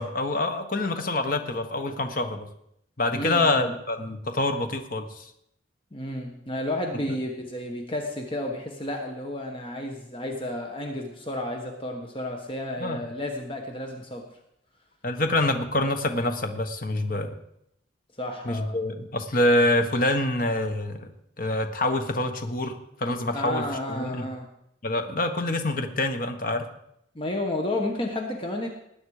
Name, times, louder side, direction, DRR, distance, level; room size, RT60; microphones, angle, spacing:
voice 1, 0.0-2.5 3.0-5.3 12.8-13.1 15.0-17.3 18.4-21.1 21.4-24.2 24.8-26.6, left 1 dB, 45° left, 6 dB, 1.4 m, -26 dB
voice 2, 3.1-3.6 5.9-14.2 18.2-18.8 23.3-24.5 27.1-28.7, left 1 dB, 25° left, 2 dB, 1.4 m, -32 dB
19.5 x 9.4 x 5.0 m, 0.77 s
head